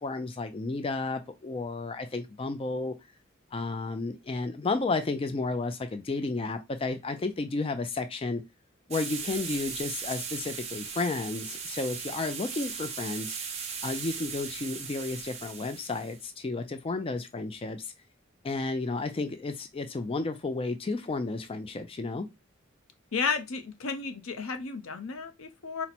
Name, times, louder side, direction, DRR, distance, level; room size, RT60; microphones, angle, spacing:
voice 1, 0.0-2.9 3.5-8.4 8.9-13.3 13.8-17.9 18.4-22.3, left 3 dB, 25° left, 0.4 m, -32 dB
sound 1, 8.9-16.2, right 6 dB, 30° right, 0.8 m, -38 dB
voice 2, 23.1-25.9, left 5 dB, 80° left, 0.7 m, -32 dB
4.2 x 2.1 x 4.1 m
head